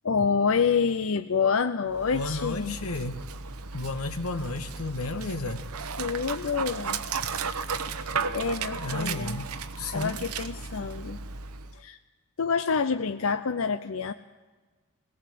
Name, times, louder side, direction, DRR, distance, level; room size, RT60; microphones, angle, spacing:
voice 1, 0.0-2.8 6.0-7.0 8.3-9.4 9.9-11.2 11.7-12.0 12.4-14.1, left 5 dB, 65° left, 10 dB, 0.6 m, -27 dB
Dog, 1.9-11.8, right 5 dB, 90° right, 1.1 m, -35 dB
voice 2, 2.1-3.2 3.7-5.7 8.8-10.2, left 2 dB, 85° left, 8 dB, 1.5 m, -33 dB
21.5 x 18.0 x 7.6 m, 1.4 s
head